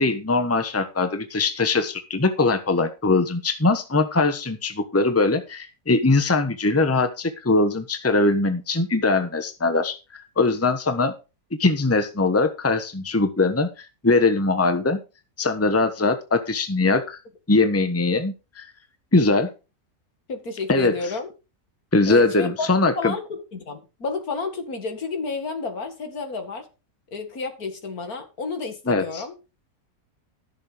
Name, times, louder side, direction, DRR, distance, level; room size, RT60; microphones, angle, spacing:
voice 1, 0.0-11.1 11.6-15.0 15.4-17.2 17.5-18.7 19.1-19.5 20.7-21.1 21.9-23.1 28.9-29.2, left 3 dB, 10° left, 1.2 m, -21 dB
voice 2, 20.3-21.3 22.1-22.7 23.0-23.2 23.5-26.7 27.1-29.3, left 4 dB, 70° left, 2.6 m, -30 dB
14.0 x 6.8 x 5.1 m
omnidirectional pair, 1.6 m